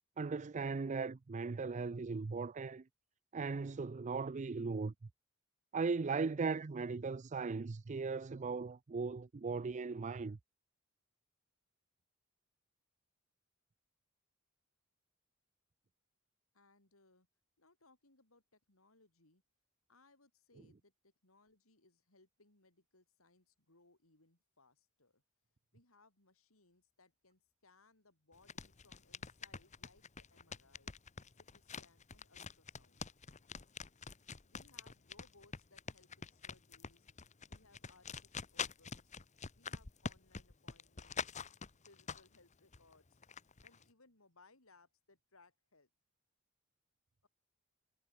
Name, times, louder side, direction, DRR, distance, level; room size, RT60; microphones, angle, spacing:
voice 1, 0.2-2.8 3.3-4.9 5.7-10.4, right 4 dB, 35° right, 0.4 m, -38 dB
voice 2, 16.5-17.3 17.6-19.4 19.9-25.2 25.7-30.9 31.4-33.0 34.4-37.1 37.5-39.1 39.5-43.2 43.6-45.9, left 3 dB, 75° left, 5.4 m, -68 dB
sound 1, 28.3-42.4 42.7-43.8, left 5 dB, 35° left, 1.1 m, -45 dB
head